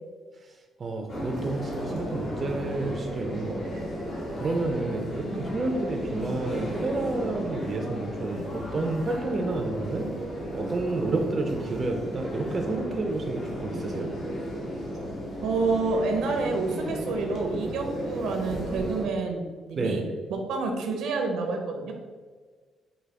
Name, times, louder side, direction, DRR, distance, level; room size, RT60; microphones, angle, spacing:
voice 1, 0.8-3.9 4.4-10.1 10.5-14.1 19.7-20.1, right 3 dB, 40° right, 3 dB, 0.4 m, -30 dB
sound 1, 1.1-19.1, equal, 60° left, 1.1 m, -34 dB
voice 2, 15.4-20.0 20.3-21.9, right 4 dB, 80° right, 3 dB, 0.6 m, -28 dB
4.7 x 2.2 x 3.3 m, 1.5 s
cardioid pair, 90°, 0 cm